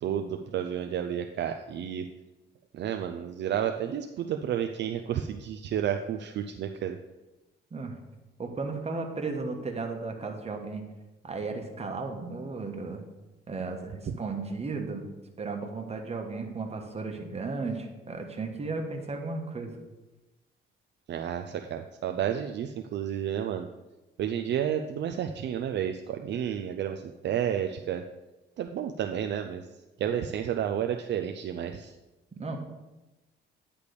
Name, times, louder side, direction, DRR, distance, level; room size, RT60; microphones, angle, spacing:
voice 1, 0.0-2.0 2.7-7.0 21.1-23.7 24.2-28.0 28.6-29.6 30.0-31.9, right 9 dB, 60° right, 6 dB, 0.5 m, -31 dB
voice 2, 8.4-10.8 11.2-13.0 13.5-15.1 15.4-19.7 32.4-32.6, right 3 dB, 30° right, 3 dB, 1.4 m, -34 dB
9.8 x 3.4 x 6.7 m, 1.1 s
cardioid pair, 90°, 20 cm